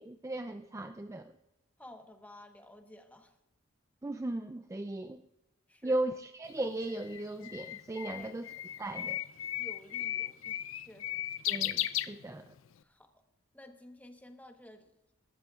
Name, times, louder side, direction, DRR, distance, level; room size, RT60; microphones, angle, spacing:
voice 1, 0.0-1.3 4.0-5.2 5.8-8.5 8.8-9.2 11.5-12.5, right 2 dB, 15° right, 9 dB, 0.4 m, -37 dB
voice 2, 1.8-3.3 5.7-6.0 8.1-8.3 8.8-8.9 9.6-11.3 12.8-13.1 13.5-14.9, left 1 dB, 10° left, 5 dB, 1.1 m, -53 dB
Bird, 6.5-12.7, left 13 dB, 85° left, 0.5 m, -36 dB
20.0 x 13.0 x 2.4 m, 0.91 s
head